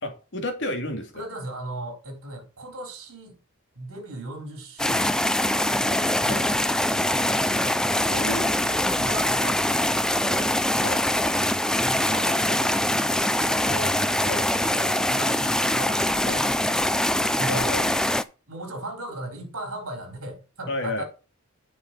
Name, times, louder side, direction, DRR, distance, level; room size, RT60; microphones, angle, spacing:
voice 1, 0.0-1.2 6.3-6.4 8.0-8.5 10.8-11.0 14.3-14.4 16.3-16.4 17.5-17.9 20.7-21.0, left 1 dB, 55° left, 2.3 m, -31 dB
voice 2, 1.1-3.3 3.8-7.7 8.1-8.3 8.7-10.6 11.8-14.0 14.4-17.7 18.5-21.0, right 1 dB, 65° right, 4.0 m, -38 dB
sound 1, 4.8-18.2, left 1 dB, 5° left, 0.3 m, -23 dB
9.6 x 5.4 x 5.3 m
head